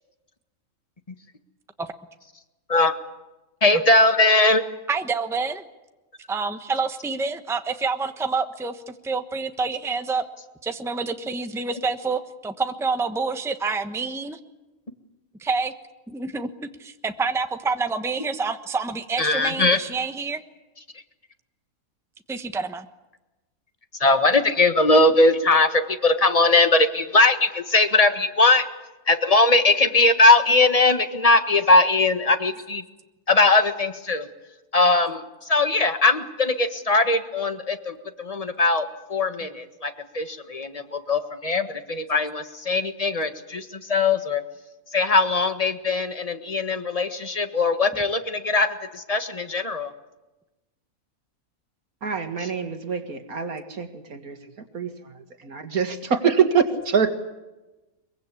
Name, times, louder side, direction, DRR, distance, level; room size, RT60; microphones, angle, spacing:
voice 1, 3.6-4.6 19.2-19.8 24.0-28.7 29.1-32.8 33.3-34.3 34.7-44.4 44.9-49.9, left 2 dB, 25° left, 9 dB, 1.6 m, -20 dB
voice 2, 4.9-5.7 6.3-10.2 10.6-14.4 15.4-15.7 16.1-16.5 16.8-20.4 22.3-22.9 47.9-48.0, right 4 dB, ahead, 8 dB, 1.0 m, -27 dB
voice 3, 52.0-57.1, right 6 dB, 90° right, 8 dB, 2.4 m, -25 dB
23.0 x 23.0 x 8.4 m, 1.1 s
omnidirectional pair, 1.5 m